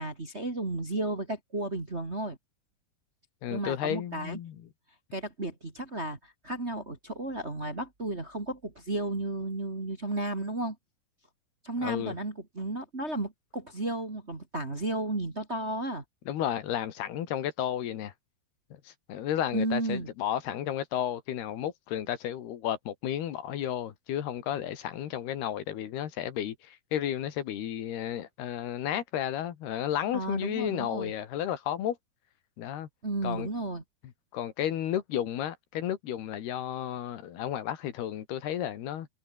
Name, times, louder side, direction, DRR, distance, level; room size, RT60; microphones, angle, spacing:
voice 1, 0.0-2.4 3.5-4.4 5.1-10.8 11.6-16.0 19.5-20.1 30.1-31.1 33.0-33.8, right 2 dB, 20° right, 2.0 m, -33 dB
voice 2, 3.4-4.6 11.8-12.2 16.3-18.1 18.9-32.0 32.6-32.9 33.2-33.5 34.3-39.1, left 10 dB, 80° left, 4.0 m, -32 dB
omnidirectional pair, 4.6 m